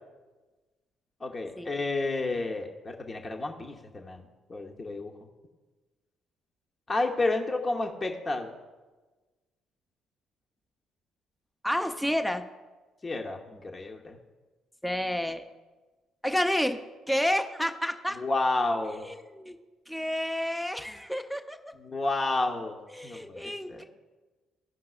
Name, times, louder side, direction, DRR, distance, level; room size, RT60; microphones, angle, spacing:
voice 1, 1.2-4.2 4.5-5.1 6.9-8.5 13.0-14.2 18.2-19.0 21.8-22.8 23.0-23.8, left 2 dB, 30° left, 1 dB, 1.0 m, -30 dB
voice 2, 11.6-12.4 14.8-15.4 16.2-16.8 17.1-18.2 19.0-19.6 19.9-21.7 22.9-23.8, equal, 5° left, 7 dB, 0.7 m, -30 dB
16.5 x 5.7 x 2.4 m, 1.2 s
figure-of-eight pair, 45°, 0 cm